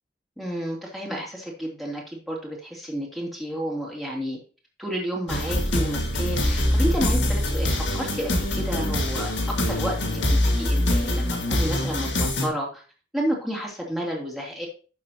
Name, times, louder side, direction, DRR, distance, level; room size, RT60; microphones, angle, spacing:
voice 1, 0.4-4.4 4.8-12.8 13.1-14.7, equal, ahead, -2 dB, 2.8 m, -31 dB
sound 1, 5.3-12.5, left 1 dB, 90° left, 1.9 m, -24 dB
11.5 x 6.8 x 2.8 m, 0.36 s
head